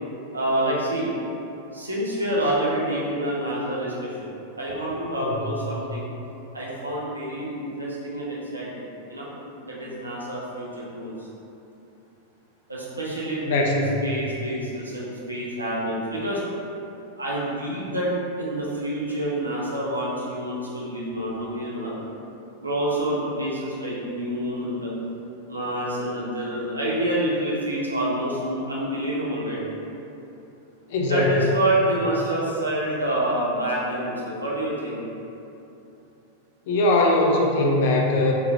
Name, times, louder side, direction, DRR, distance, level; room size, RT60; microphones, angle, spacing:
voice 1, 0.3-1.1 1.7-4.2 4.6-6.1 6.5-8.7 9.1-9.3 9.6-11.1 12.7-16.4 17.2-18.1 18.4-21.9 22.6-24.9 25.5-29.6 31.1-35.0, right 1 dB, 80° right, -6 dB, 0.7 m, -27 dB
voice 2, 13.5-14.0 30.9-31.5 36.7-38.3, left 2 dB, 50° left, 0 dB, 0.5 m, -21 dB
3.8 x 3.2 x 2.3 m, 2.9 s
figure-of-eight pair, 90°, 0 cm